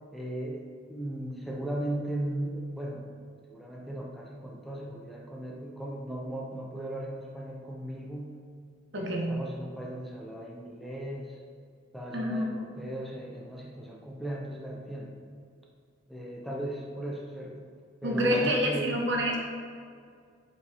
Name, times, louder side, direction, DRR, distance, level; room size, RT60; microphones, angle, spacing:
voice 1, 0.1-3.1 3.5-8.4 9.0-11.4 11.9-15.1 16.1-17.6 18.0-19.0, right 1 dB, ahead, -3 dB, 0.7 m, -37 dB
voice 2, 8.9-9.4 12.1-12.5 18.0-19.4, equal, 65° right, 0 dB, 1.1 m, -27 dB
6.9 x 5.1 x 3.5 m, 2.1 s
head